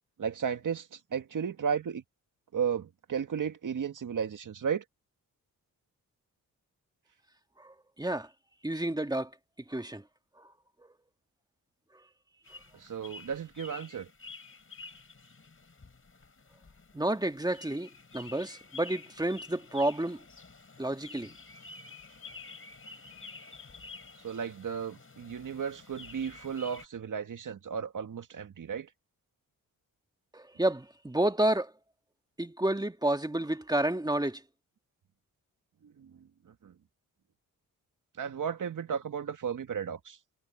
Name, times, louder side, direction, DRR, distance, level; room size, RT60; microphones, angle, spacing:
voice 1, 0.2-2.0 2.5-4.8 12.7-14.1 24.2-28.9 36.0-36.1 36.6-36.7 38.2-40.2, right 7 dB, 60° right, 2.1 m, -34 dB
voice 2, 7.6-8.3 8.6-9.3 9.7-10.0 10.4-10.5 10.8-10.9 16.9-20.2 20.8-21.3 30.3-31.7 32.4-34.4, right 1 dB, 10° right, 1.9 m, -30 dB
Suburban Birds, 12.4-26.9, left 4 dB, 35° left, 5.9 m, -50 dB
cardioid pair, 70°, 35 cm